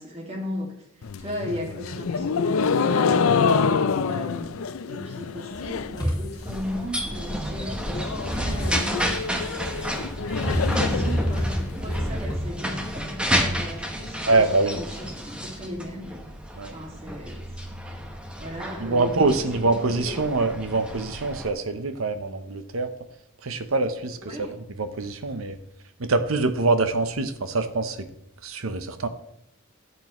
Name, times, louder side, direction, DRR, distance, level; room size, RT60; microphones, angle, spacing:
voice 1, 0.0-3.3 4.0-10.1 10.4-16.2 16.7-17.6 18.4-20.3 23.6-23.7 24.2-24.5, equal, 30° right, 0 dB, 2.2 m, -37 dB
sound 1, 1.0-6.1 6.3-6.9 7.2-7.3 7.5-7.6 7.9-11.9, left 5 dB, 85° left, 0.5 m, -26 dB
sound 2, 5.5-12.5, equal, 20° left, 2.5 m, -29 dB
sound 3, 6.4-21.5, equal, 5° right, 1.0 m, -31 dB
voice 2, 14.3-14.8 16.6-16.7 18.8-22.9 23.4-24.5 24.8-25.6 26.0-28.1 28.4-29.1, right 3 dB, 85° right, 9 dB, 0.9 m, -24 dB
13.0 x 8.1 x 3.1 m, 0.79 s
head